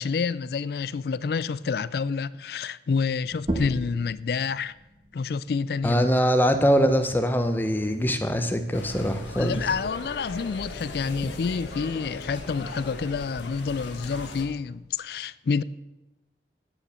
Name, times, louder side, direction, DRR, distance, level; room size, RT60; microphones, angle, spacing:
voice 1, 0.0-4.7 5.1-6.1 9.4-15.6, left 5 dB, 55° left, 0.3 m, -28 dB
sound 1, 3.3-8.5, right 1 dB, 30° right, 1.4 m, -38 dB
voice 2, 5.8-9.6, equal, 10° left, 0.8 m, -23 dB
sound 2, 8.7-14.5, left 2 dB, 90° left, 1.5 m, -38 dB
9.3 x 7.2 x 8.1 m
head